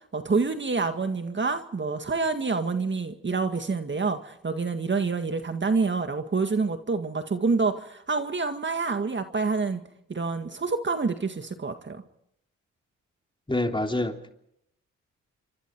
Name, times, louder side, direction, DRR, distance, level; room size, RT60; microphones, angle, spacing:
voice 1, 0.1-9.8 10.1-12.0, right 4 dB, 35° right, 7 dB, 1.9 m, -27 dB
voice 2, 13.5-14.3, left 1 dB, 15° left, 4 dB, 3.3 m, -27 dB
28.0 x 25.0 x 4.7 m, 0.75 s
cardioid pair, 65°, 31 cm